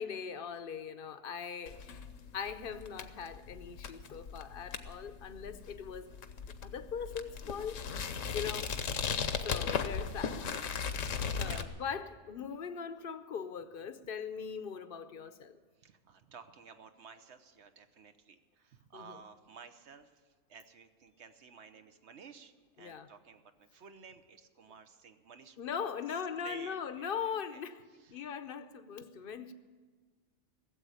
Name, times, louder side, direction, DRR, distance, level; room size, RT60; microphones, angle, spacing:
voice 1, 0.0-2.0 2.3-6.2 6.6-7.8 8.3-8.8 9.4-10.5 11.4-15.6 18.9-19.2 22.8-23.1 25.6-27.8 28.1-29.5, left 7 dB, 50° left, 0.8 m, -40 dB
sound 1, 1.7-11.6, left 6 dB, 75° left, 1.2 m, -37 dB
voice 2, 11.4-11.7 15.8-25.9 26.4-27.1 27.5-27.6 28.0-28.5, right 6 dB, 60° right, 1.1 m, -54 dB
16.0 x 8.0 x 10.0 m
omnidirectional pair, 1.3 m